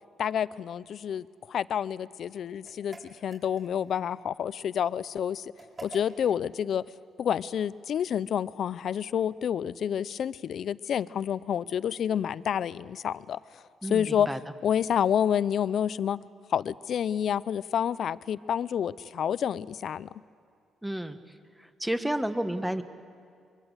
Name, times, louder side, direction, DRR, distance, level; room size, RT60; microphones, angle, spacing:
voice 1, 0.2-5.4 5.8-6.8 7.2-13.4 13.9-14.3 14.6-16.2 16.5-20.1, left 9 dB, 65° left, 18 dB, 0.6 m, -29 dB
sound 1, 2.6-4.0 5.6-6.4, right 3 dB, 30° right, 4.6 m, -46 dB
voice 2, 13.8-14.4 20.8-21.2 21.6-22.8, right 1 dB, 5° right, 10 dB, 1.4 m, -31 dB
24.5 x 23.0 x 8.1 m, 2.3 s
cardioid pair, 90°, 0 cm